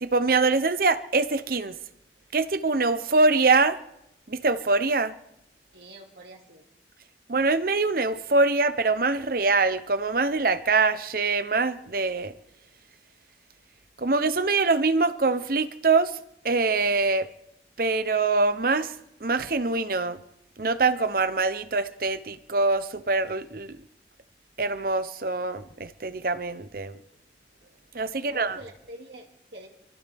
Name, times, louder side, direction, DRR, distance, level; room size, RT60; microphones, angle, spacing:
voice 1, 0.0-1.7 2.3-3.8 4.3-5.1 7.3-12.3 14.0-16.2 16.4-17.3 17.8-18.9 19.2-20.2 20.6-23.8 24.6-27.0 27.9-28.6, right 3 dB, 50° right, 0.8 m, -24 dB
voice 2, 5.7-6.6 28.1-29.7, right 1 dB, 70° right, 2.5 m, -45 dB
27.5 x 14.5 x 3.5 m
head